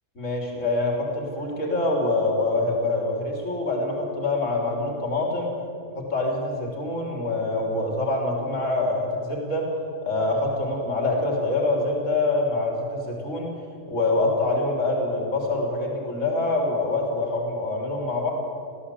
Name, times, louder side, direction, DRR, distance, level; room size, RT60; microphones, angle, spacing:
voice 1, 0.2-5.5 5.9-9.7 10.0-13.5 13.9-18.3, left 2 dB, 50° left, 0 dB, 4.1 m, -25 dB
20.0 x 15.0 x 8.5 m, 2.5 s
omnidirectional pair, 1.7 m